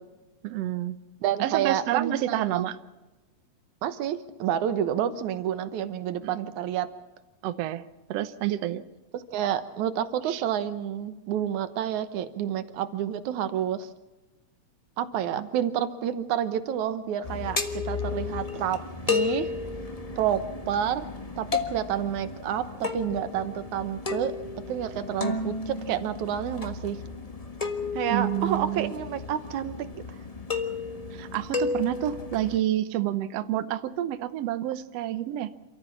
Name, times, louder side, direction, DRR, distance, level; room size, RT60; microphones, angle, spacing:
voice 1, 0.4-1.0 1.4-2.8 6.2-6.3 7.4-7.8 8.1-8.8 10.3-10.4 15.4-15.5 28.1-28.9 31.1-35.5, right 13 dB, 70° right, 12 dB, 1.8 m, -29 dB
voice 2, 1.2-2.7 3.8-6.9 9.1-13.9 15.0-18.8 19.1-19.5 20.2-20.4 20.7-21.1 21.4-24.4 24.7-27.0 28.0-29.8, right 10 dB, 85° right, 12 dB, 2.5 m, -29 dB
sound 1, 17.2-32.6, left 4 dB, 80° left, 0.3 m, -33 dB
28.5 x 14.0 x 7.2 m, 1.1 s
omnidirectional pair, 3.3 m